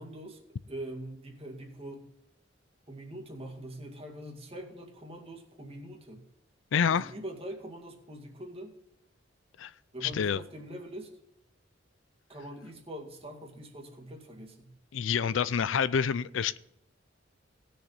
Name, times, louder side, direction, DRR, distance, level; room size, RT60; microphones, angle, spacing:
voice 1, 0.0-2.1 2.9-6.2 6.9-8.7 9.9-11.1 12.3-14.7, right 1 dB, 30° right, 2.2 m, -43 dB
voice 2, 6.7-7.1 9.6-9.7 10.0-10.4 14.9-16.6, left 7 dB, 75° left, 0.4 m, -27 dB
18.5 x 6.8 x 4.0 m
head